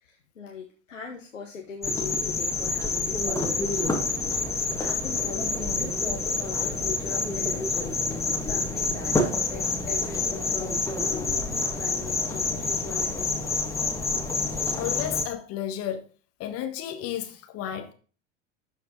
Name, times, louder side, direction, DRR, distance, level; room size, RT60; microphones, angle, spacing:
voice 1, 0.0-4.0 4.3-8.0 8.4-13.5 13.8-14.0, left 6 dB, 80° left, 1.2 m, -40 dB
sound 1, 1.8-15.2, left 3 dB, 5° left, 1.9 m, -27 dB
voice 2, 14.7-16.0 16.4-17.9, left 11 dB, 40° left, 1.4 m, -32 dB
13.0 x 4.5 x 3.9 m
figure-of-eight pair, 80°, 38 cm